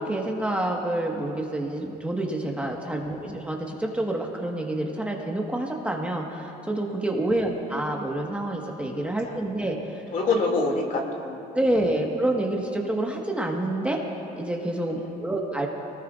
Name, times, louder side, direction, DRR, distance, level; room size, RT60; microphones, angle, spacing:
voice 1, 0.0-10.0 10.3-10.4 11.5-14.0 14.3-15.7, right 1 dB, 5° right, -1 dB, 1.4 m, -28 dB
voice 2, 10.1-11.4 14.8-15.3, left 3 dB, 50° left, 0 dB, 2.5 m, -27 dB
23.5 x 19.0 x 2.5 m, 2.9 s
cardioid pair, 110°, 17 cm